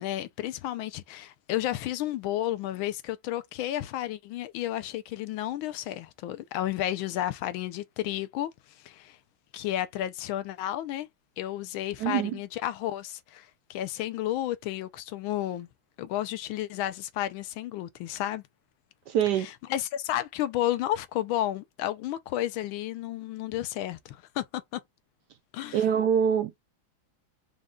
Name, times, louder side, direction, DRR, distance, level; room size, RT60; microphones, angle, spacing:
voice 1, 0.0-8.5 8.8-9.2 9.5-11.1 11.4-15.7 16.0-18.4 19.4-24.8 25.5-25.8, left 13 dB, 80° left, 1.4 m, -32 dB
voice 2, 12.0-12.4 19.1-19.5 25.7-26.6, right 8 dB, 75° right, 1.0 m, -25 dB
5.1 x 2.3 x 3.5 m
omnidirectional pair, 2.2 m